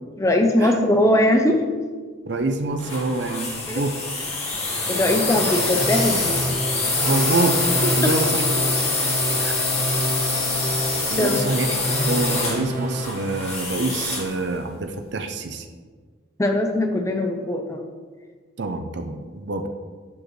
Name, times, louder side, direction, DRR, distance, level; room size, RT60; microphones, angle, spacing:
voice 1, 0.2-1.6 3.7-3.8 4.9-6.4 11.2-11.4 16.4-17.8, left 1 dB, 15° left, 4 dB, 0.5 m, -20 dB
voice 2, 2.3-3.9 5.0-5.1 7.1-8.4 9.4-9.7 11.1-15.7 18.6-19.7, right 2 dB, 60° right, 6 dB, 0.6 m, -26 dB
sound 1, 2.8-14.4, left 3 dB, 30° left, 1.7 m, -25 dB
sound 2, 5.8-13.4, equal, 40° right, 1.2 m, -29 dB
10.5 x 5.0 x 3.2 m, 1.5 s
head